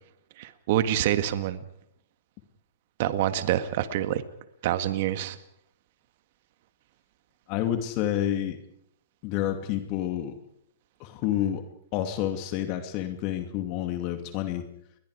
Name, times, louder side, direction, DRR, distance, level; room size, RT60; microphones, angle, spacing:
voice 1, 0.4-1.6 3.0-4.2 4.6-5.4, right 12 dB, 55° right, 11 dB, 1.7 m, -26 dB
voice 2, 7.5-8.6 9.2-10.4 11.0-11.7 11.9-14.6, left 11 dB, 45° left, 7 dB, 2.5 m, -29 dB
30.0 x 22.0 x 5.0 m, 0.71 s
hypercardioid pair, 120°, 0 cm